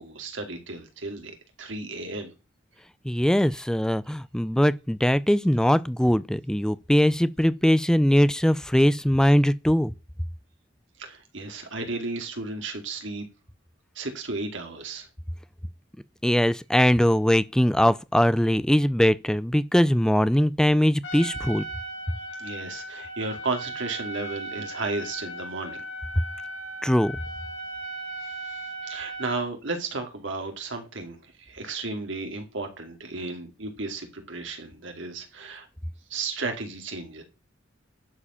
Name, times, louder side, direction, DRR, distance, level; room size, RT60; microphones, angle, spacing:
voice 1, 0.0-1.3 1.6-2.3 11.0-13.3 14.0-15.1 22.4-25.8 28.8-31.2 31.5-35.7 36.1-37.2, right 3 dB, 85° right, 2.4 m, -33 dB
voice 2, 3.0-9.9 16.2-21.7 26.8-27.2, equal, 5° left, 0.4 m, -21 dB
Trumpet, 21.0-29.5, right 2 dB, 90° left, 2.3 m, -37 dB
11.0 x 4.9 x 5.7 m
head